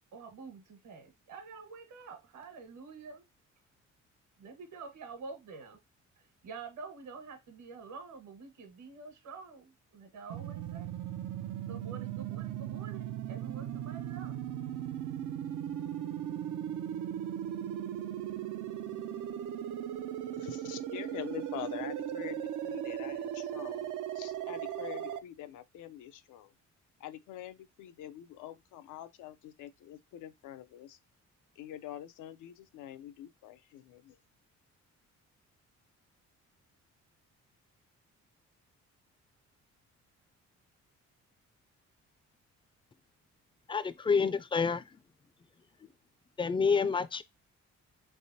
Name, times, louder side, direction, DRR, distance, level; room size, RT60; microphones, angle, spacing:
voice 1, 0.1-3.2 4.4-5.8 6.2-11.0 11.7-14.3, right 4 dB, 70° right, 1.4 m, -48 dB
sound 1, 10.3-25.2, right 11 dB, 85° right, 0.6 m, -38 dB
voice 2, 20.3-23.9 24.1-26.5 27.0-31.0 31.5-34.2, left 12 dB, 85° left, 0.6 m, -45 dB
voice 3, 43.7-44.8 46.4-47.2, left 5 dB, 15° left, 0.4 m, -28 dB
4.2 x 3.4 x 2.7 m
cardioid pair, 90°, 30 cm